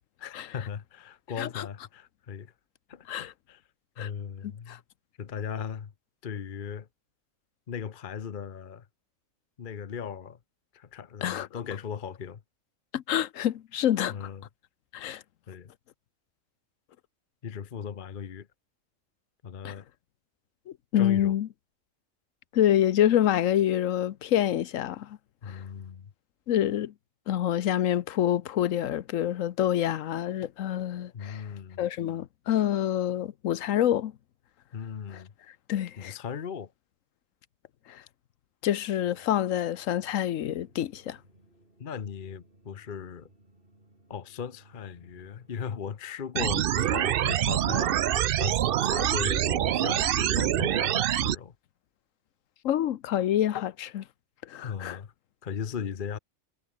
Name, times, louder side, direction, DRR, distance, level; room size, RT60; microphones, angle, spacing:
voice 1, 0.2-2.5 2.9-3.6 4.0-4.8 5.2-5.9 6.2-6.9 7.7-8.9 9.6-10.4 10.7-12.4 14.1-14.5 15.5-15.7 17.4-18.5 19.4-19.9 20.9-21.4 25.4-26.1 31.1-31.8 34.7-35.3 36.0-36.7 41.8-43.3 44.1-48.0 48.3-51.5 54.6-55.1 55.4-56.2, left 7 dB, 45° left, 0.9 m, -37 dB
voice 2, 4.4-4.8 11.2-11.5 12.9-14.3 14.9-15.2 19.6-19.7 20.9-21.5 22.5-25.2 25.5-25.6 26.5-26.9 27.3-31.4 31.8-34.1 35.1-35.2 35.7-36.1 37.9-38.0 38.6-41.2 52.6-54.0 54.4-55.0, left 11 dB, 80° left, 1.1 m, -27 dB
sound 1, 38.9-45.9, right 1 dB, 45° right, 5.3 m, -61 dB
sound 2, 46.4-51.4, right 11 dB, 60° right, 0.6 m, -25 dB
omnidirectional pair, 1.3 m